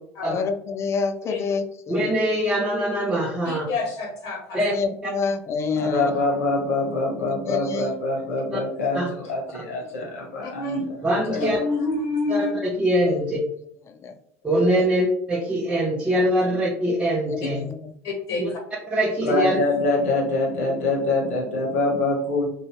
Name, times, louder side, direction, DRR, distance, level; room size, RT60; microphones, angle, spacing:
voice 1, 0.3-2.1 4.7-6.1 7.3-8.0 13.0-13.2 13.9-14.1 17.3-17.9, left 5 dB, 35° left, 7 dB, 0.5 m, -28 dB
voice 2, 1.9-3.7 4.5-4.7 5.0-5.1 8.5-8.6 8.9-9.1 11.0-11.6 12.3-13.4 14.4-17.6 18.4-18.5 18.9-19.6, equal, 15° right, -2 dB, 0.7 m, -23 dB
voice 3, 3.4-4.6 10.4-10.8 11.4-12.5 18.0-18.6, left 3 dB, 60° left, 2 dB, 0.9 m, -28 dB
voice 4, 5.8-11.6 19.3-22.5, left 2 dB, 80° left, -2 dB, 1.2 m, -25 dB
3.0 x 2.7 x 3.0 m, 0.67 s
hypercardioid pair, 75°, 8 cm